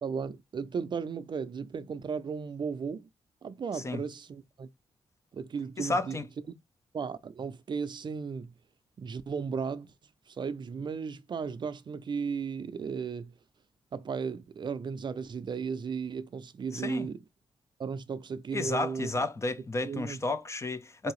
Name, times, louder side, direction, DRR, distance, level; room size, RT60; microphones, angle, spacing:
voice 1, 0.0-3.1 3.4-4.7 5.3-6.2 6.9-8.5 9.0-9.9 10.3-13.3 13.9-17.2 17.8-19.1 19.8-20.2 21.0-21.1, right 6 dB, 45° right, 0.5 m, -35 dB
voice 2, 5.8-6.3 16.7-17.1 18.5-21.1, left 2 dB, 25° left, 0.6 m, -32 dB
4.5 x 2.8 x 3.0 m
cardioid pair, 105°, 11 cm